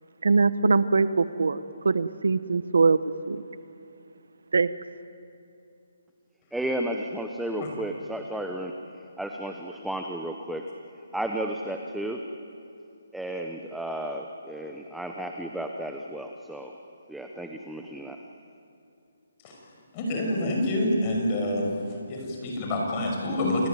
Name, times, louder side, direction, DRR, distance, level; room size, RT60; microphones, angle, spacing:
voice 1, 0.2-3.0 3.3-3.4 4.5-4.7, right 4 dB, 85° right, 14 dB, 1.1 m, -22 dB
voice 2, 6.5-10.7 11.1-12.3 13.1-16.8 17.1-18.2, right 1 dB, ahead, 3 dB, 0.8 m, -33 dB
voice 3, 19.9-21.6 22.1-23.7, left 1 dB, 20° left, 0 dB, 6.0 m, -27 dB
29.0 x 19.5 x 9.4 m, 2.6 s
hypercardioid pair, 170°, 0 cm